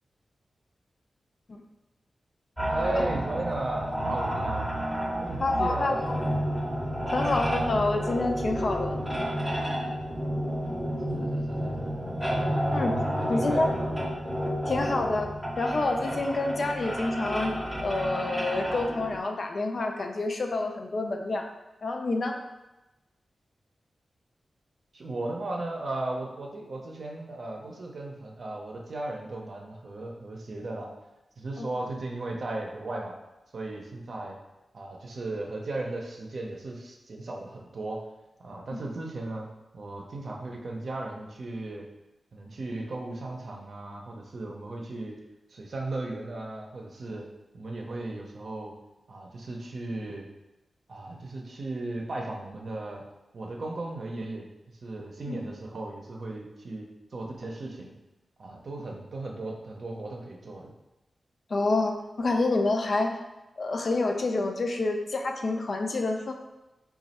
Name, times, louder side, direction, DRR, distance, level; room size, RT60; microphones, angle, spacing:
sound 1, 2.6-19.2, equal, 5° right, 0.6 m, -30 dB
voice 1, 2.7-4.8 5.2-6.1 11.1-12.1 13.2-13.9 24.9-30.9 31.4-33.1 33.5-34.4 34.7-38.0 38.4-39.5 39.7-41.9 42.3-45.2 45.5-47.3 47.5-48.7 49.1-50.3 50.9-53.0 53.3-54.5 54.8-57.9 58.4-60.7, right 2 dB, 65° right, 0 dB, 0.6 m, -36 dB
voice 2, 5.4-6.2 7.1-9.0 12.7-13.0 13.3-13.7 14.7-21.5 21.8-22.4 31.6-31.7 38.7-38.8 55.3-55.4 61.5-63.1 63.6-66.3, left 2 dB, 60° left, 4 dB, 0.4 m, -28 dB
3.1 x 2.3 x 4.1 m, 1.0 s
wide cardioid pair, 85°, 0 cm